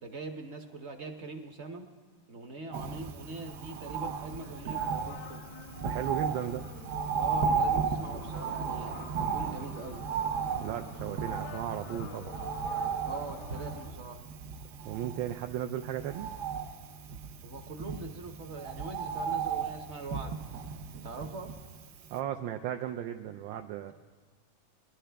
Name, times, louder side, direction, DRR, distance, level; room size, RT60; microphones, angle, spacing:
voice 1, 0.0-1.9 2.3-5.5 7.1-10.0 13.1-14.2 17.4-20.4 21.0-21.5, right 3 dB, 50° right, 5 dB, 0.9 m, -42 dB
Bird, 2.7-21.8 22.2-22.3, right 6 dB, 65° right, 1.3 m, -35 dB
sound 1, 3.9-13.9, left 9 dB, 75° left, 1.1 m, -49 dB
voice 2, 5.8-6.6 10.6-12.4 14.8-16.3 22.1-23.9, right 11 dB, 85° right, 5 dB, 1.3 m, -35 dB
23.0 x 11.5 x 3.4 m, 1.4 s
omnidirectional pair, 2.1 m